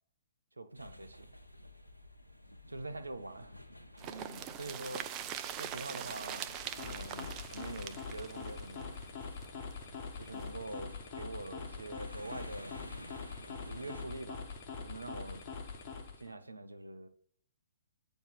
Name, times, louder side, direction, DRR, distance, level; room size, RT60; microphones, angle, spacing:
voice 1, 0.6-1.3 2.7-3.6 4.0-5.1 5.6-9.0 10.2-12.8 13.7-14.5 14.8-15.5 16.2-17.1, right 2 dB, 75° right, 0.6 m, -45 dB
sound 1, 0.7-14.1, left 1 dB, 90° left, 0.7 m, -54 dB
sound 2, 4.0-9.7 10.0-10.1 10.4-10.5, right 10 dB, 25° right, 0.5 m, -42 dB
sound 3, 6.4-16.3, left 5 dB, 35° left, 1.1 m, -44 dB
8.4 x 3.4 x 4.1 m
figure-of-eight pair, 120°, 0 cm